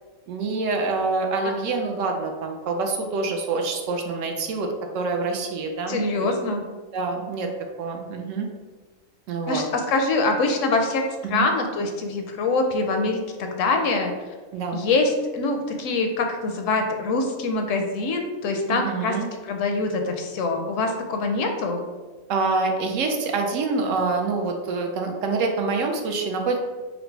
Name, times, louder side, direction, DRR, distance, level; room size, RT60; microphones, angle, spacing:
voice 1, 0.3-4.7 4.9-6.3 6.9-7.5 7.8-8.5 9.3-9.6 11.2-11.5 14.5-14.9 18.7-19.3 22.3-26.6, right 3 dB, 75° right, 3 dB, 0.9 m, -26 dB
voice 2, 5.9-6.6 9.5-11.0 11.3-14.1 14.7-19.1 19.5-21.8, left 3 dB, 75° left, 4 dB, 0.9 m, -24 dB
3.9 x 2.0 x 4.4 m, 1.3 s
omnidirectional pair, 1.4 m